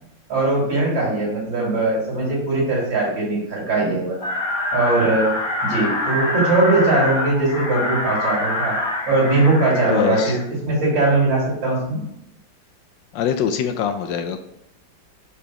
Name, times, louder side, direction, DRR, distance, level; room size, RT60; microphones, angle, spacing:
voice 1, 0.3-4.2 4.7-5.3 5.6-8.8 9.1-10.3 10.6-12.0, right 2 dB, 70° right, -5 dB, 3.0 m, -20 dB
sound 1, 4.2-10.4, left 1 dB, 50° left, 1.7 m, -25 dB
voice 2, 9.9-10.4 13.1-14.4, left 8 dB, 75° left, 7 dB, 1.2 m, -23 dB
5.0 x 5.0 x 4.7 m, 0.80 s
omnidirectional pair, 2.1 m